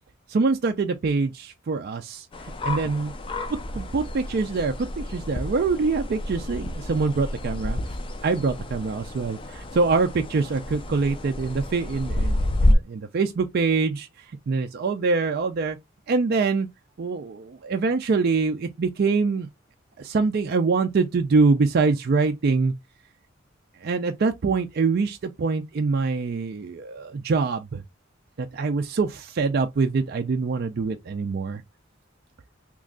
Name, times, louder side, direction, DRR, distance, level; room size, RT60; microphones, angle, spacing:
voice 1, 0.3-2.3 2.6-3.1 3.7-7.8 8.2-14.1 14.5-15.8 16.1-16.7 17.0-19.5 20.0-22.7 23.8-27.8 28.4-31.6, right 4 dB, 50° right, 0.4 m, -24 dB
sound 1, 2.3-12.7, left 1 dB, 25° left, 0.4 m, -29 dB
3.0 x 2.5 x 3.5 m
head